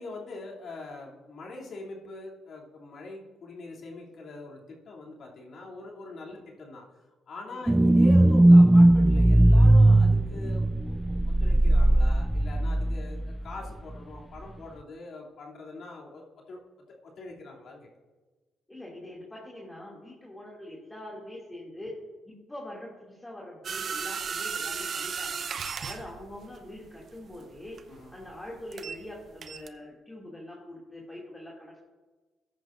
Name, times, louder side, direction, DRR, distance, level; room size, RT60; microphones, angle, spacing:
voice 1, 0.0-6.8 7.3-16.6 17.0-17.9 27.9-28.1, left 2 dB, 60° left, -3 dB, 2.8 m, -43 dB
sound 1, 7.7-13.3 13.7-13.8, right 1 dB, 10° right, 0.3 m, -19 dB
voice 2, 18.7-21.9 22.2-25.4 25.8-27.8 28.1-31.8, left 1 dB, 10° left, -4 dB, 2.5 m, -43 dB
sound 2, 23.6-29.1 29.4-29.7, right 6 dB, 50° right, 0.7 m, -35 dB
14.0 x 10.5 x 2.6 m, 1.3 s
cardioid pair, 90°, 0 cm